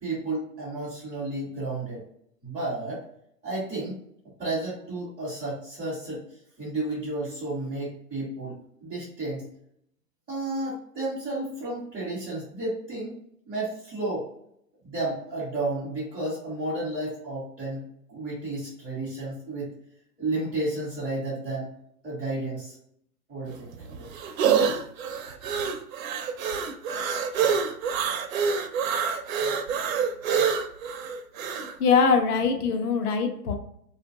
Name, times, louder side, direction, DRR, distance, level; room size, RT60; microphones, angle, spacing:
voice 1, 0.0-2.0 2.4-3.0 3.4-4.0 4.4-6.2 6.6-9.5 10.3-13.2 13.5-14.3 14.8-17.8 18.1-19.7 20.2-21.7 22.0-22.8 23.3-24.1, right 2 dB, 5° left, -12 dB, 0.4 m, -32 dB
sound 1, 23.5-31.7, right 6 dB, 60° right, 0.5 m, -26 dB
voice 2, 31.8-33.5, left 5 dB, 65° left, 5 dB, 0.7 m, -22 dB
2.9 x 2.5 x 2.5 m, 0.70 s
hypercardioid pair, 140°, 49 cm